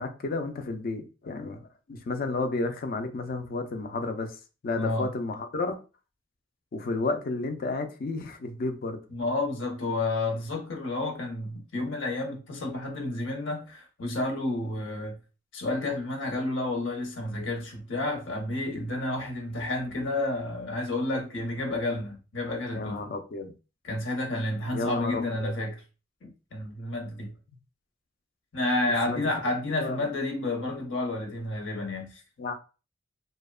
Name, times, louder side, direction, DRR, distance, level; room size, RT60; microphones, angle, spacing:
voice 1, 0.0-4.3 4.6-5.8 6.7-9.0 22.7-23.5 24.7-25.5 29.1-29.2 29.8-30.0 32.4-32.5, left 3 dB, 50° left, 0.4 m, -32 dB
voice 2, 4.7-5.1 9.1-15.2 15.5-23.0 23.8-25.8 26.2-27.3 28.5-32.2, left 2 dB, 80° left, 0.8 m, -30 dB
2.7 x 2.1 x 2.3 m
head